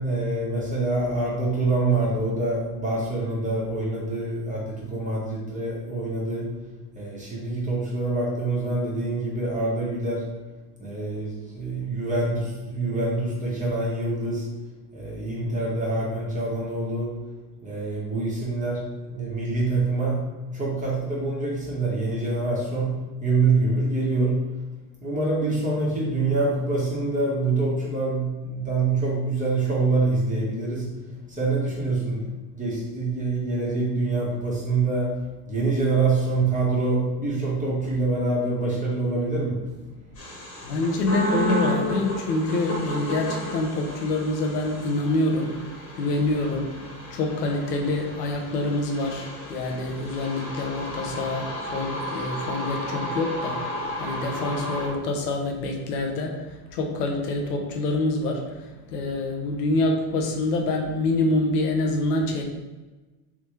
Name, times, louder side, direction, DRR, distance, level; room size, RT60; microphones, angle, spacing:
voice 1, 0.0-6.6 6.9-10.3 10.8-14.5 14.9-17.1 17.6-20.3 20.5-24.4 25.0-39.6, right 3 dB, 15° right, -5 dB, 1.3 m, -25 dB
sound 1, 40.2-54.9, equal, 30° left, 1.4 m, -33 dB
voice 2, 40.6-45.6 46.0-46.8 47.1-62.4, left 2 dB, 80° left, 2 dB, 0.9 m, -26 dB
3.5 x 3.0 x 3.1 m, 1.2 s
supercardioid pair, 110°, 47 cm